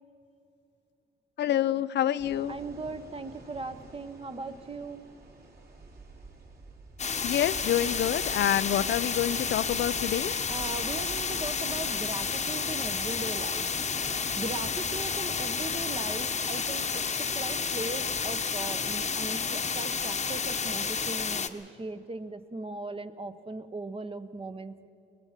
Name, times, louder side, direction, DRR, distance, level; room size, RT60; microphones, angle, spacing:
voice 1, 1.4-2.6 7.2-10.4, left 11 dB, 60° left, 15 dB, 0.5 m, -27 dB
sound 1, 2.2-20.1, right 3 dB, 50° right, 4.1 m, -48 dB
voice 2, 2.5-5.0 10.5-13.7 14.1-17.0 17.3-24.7, right 3 dB, 30° right, 10 dB, 1.2 m, -38 dB
sound 2, 7.0-21.5, left 5 dB, 35° left, 1.1 m, -31 dB
22.0 x 20.0 x 5.9 m, 2.7 s
cardioid pair, 90°, 20 cm